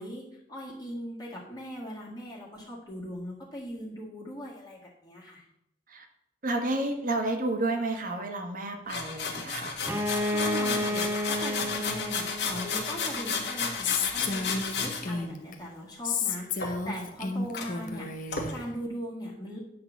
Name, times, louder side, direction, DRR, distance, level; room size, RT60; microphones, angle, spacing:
voice 1, 0.0-5.4 10.2-19.6, equal, 25° left, -5 dB, 2.0 m, -40 dB
voice 2, 6.4-9.8, right 2 dB, 50° right, 4 dB, 1.3 m, -30 dB
sound 1, 8.9-15.1 16.6-17.2 17.6-17.7 18.3-18.5, left 5 dB, 80° left, 1.7 m, -32 dB
Bowed string instrument, 9.8-13.5, left 1 dB, 15° right, 0.6 m, -32 dB
Female speech woman speaking, 13.8-15.5 16.0-18.5, left 5 dB, 50° left, 0.8 m, -32 dB
9.6 x 4.0 x 7.1 m, 0.79 s
head